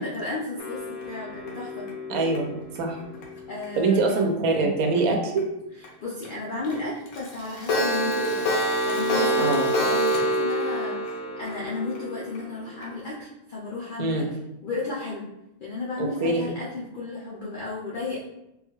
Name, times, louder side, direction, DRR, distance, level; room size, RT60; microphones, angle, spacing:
voice 1, 0.0-1.9 3.5-4.1 6.0-14.2 14.6-15.3 15.6-18.2, left 3 dB, 60° left, -6 dB, 0.5 m, -33 dB
Clock, 0.6-3.6 4.1-4.2 4.5-4.6 5.0-5.1 5.4-5.5 5.8-5.9 6.2-6.3 6.6-6.7 7.1-12.9, equal, 80° left, 1.2 m, -27 dB
voice 2, 2.1-2.5 2.8-3.0 3.7-5.4 9.4-9.7 14.0-14.3 16.0-16.4, right 3 dB, 90° right, 3 dB, 1.1 m, -24 dB
3.7 x 2.3 x 3.0 m, 0.89 s
omnidirectional pair, 1.5 m